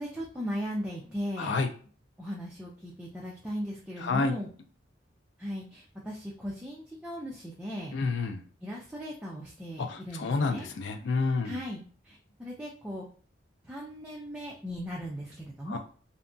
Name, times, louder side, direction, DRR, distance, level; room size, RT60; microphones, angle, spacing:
voice 1, 0.0-1.6 2.2-4.5 5.4-7.9 8.6-10.7 11.4-13.0 13.6-15.8, equal, 5° right, 0.4 m, -38 dB
voice 2, 1.4-1.7 4.0-4.4 7.9-8.4 9.8-11.6 15.7-15.8, left 4 dB, 70° left, 0.4 m, -29 dB
2.7 x 2.2 x 2.6 m
head